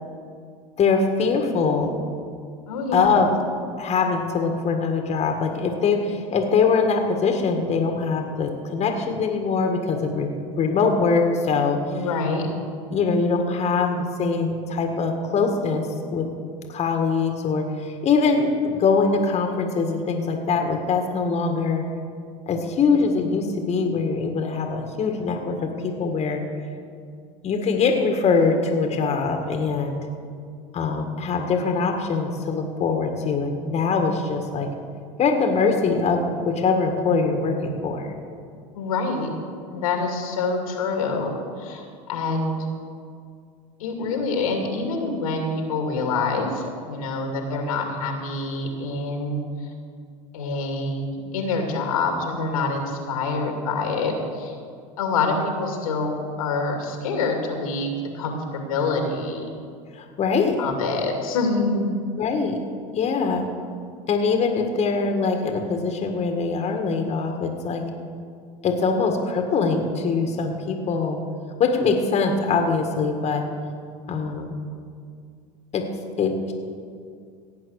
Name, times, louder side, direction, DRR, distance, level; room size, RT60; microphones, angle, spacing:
voice 1, 0.8-1.9 2.9-3.3 3.8-11.8 12.9-16.3 16.7-21.9 22.5-26.4 27.4-30.0 30.7-34.7 35.2-38.1 59.9-60.6 62.2-62.6 62.9-63.5 64.1-67.8 68.6-71.2 71.6-73.4 74.1-74.6 75.7-75.9 76.2-76.5, left 4 dB, 40° left, 4 dB, 1.7 m, -23 dB
voice 2, 2.7-3.2 11.9-12.5 38.7-39.3 39.7-42.7 43.8-49.4 50.3-54.6 55.0-59.5 60.6-62.0, left 3 dB, 85° left, 3 dB, 2.4 m, -26 dB
16.5 x 8.4 x 6.5 m, 2.2 s
hypercardioid pair, 95°, 17 cm